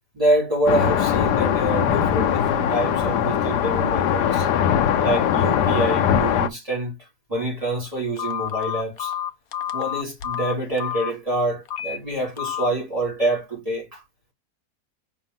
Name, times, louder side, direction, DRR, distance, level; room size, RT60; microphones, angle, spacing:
voice 1, 0.1-4.5 5.0-6.9 7.3-9.1 9.7-14.0, right 1 dB, 20° right, 4.0 m, -26 dB
sound 1, 0.7-6.5, left 9 dB, 90° left, 1.3 m, -21 dB
Telephone, 8.2-11.1 11.7-12.0 12.4-12.7, left 10 dB, 70° left, 1.1 m, -29 dB
5.3 x 3.5 x 5.7 m
omnidirectional pair, 1.7 m